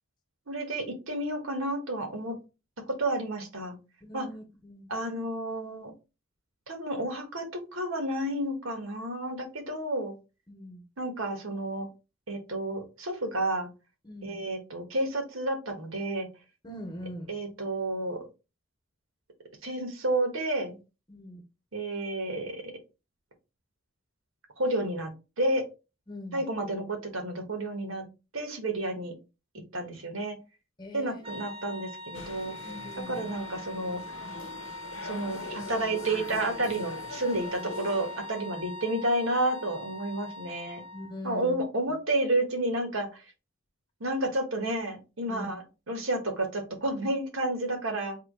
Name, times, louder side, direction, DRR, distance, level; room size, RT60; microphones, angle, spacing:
voice 1, 0.5-2.4 2.9-3.8 4.1-4.3 4.9-5.9 6.7-10.1 11.0-11.9 12.3-13.7 14.2-16.3 17.3-18.2 19.6-20.8 21.7-22.6 24.6-25.1 25.4-25.6 26.3-28.1 28.3-29.1 29.7-30.4 30.9-32.5 33.1-34.0 35.0-40.8 41.2-43.2 44.0-48.2, right 1 dB, 80° right, 1.4 m, -31 dB
voice 2, 4.0-4.9 10.5-10.8 14.0-14.4 16.6-17.3 21.1-21.4 26.1-26.4 30.8-31.2 32.6-33.3 40.9-41.5 45.3-45.6, left 1 dB, 20° left, 1.0 m, -42 dB
sound 1, 31.2-41.2, left 1 dB, 25° right, 0.6 m, -42 dB
sound 2, 32.1-38.5, left 3 dB, 70° left, 0.7 m, -42 dB
3.6 x 3.0 x 4.7 m
head